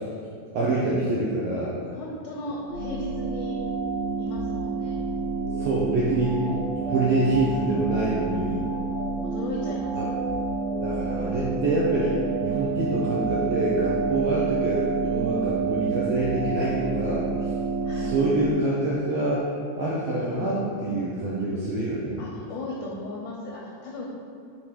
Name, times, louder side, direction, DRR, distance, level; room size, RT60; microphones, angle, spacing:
voice 1, 0.5-1.7 5.6-6.5 6.8-8.6 9.9-10.1 10.8-17.5 17.9-19.4 19.8-22.2, right 2 dB, 80° right, -6 dB, 1.5 m, -26 dB
voice 2, 1.9-3.6 4.2-5.0 9.2-10.1 17.8-18.2 22.2-24.1, left 2 dB, 80° left, -2 dB, 2.2 m, -36 dB
sound 1, 2.7-18.5, right 4 dB, 60° left, 2.0 m, -28 dB
5.7 x 4.9 x 4.5 m, 2.3 s
omnidirectional pair, 3.8 m